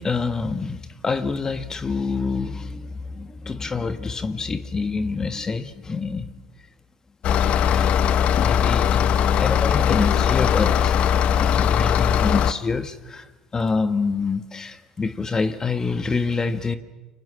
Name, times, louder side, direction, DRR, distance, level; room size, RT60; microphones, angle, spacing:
voice 1, 0.0-6.3 7.7-7.9 8.3-13.3 13.5-16.8, left 4 dB, 25° left, 10 dB, 1.6 m, -27 dB
sound 1, 7.2-12.5, left 8 dB, 55° left, 1.3 m, -19 dB
29.5 x 25.0 x 7.5 m, 1.1 s
hypercardioid pair, 75°, 2 cm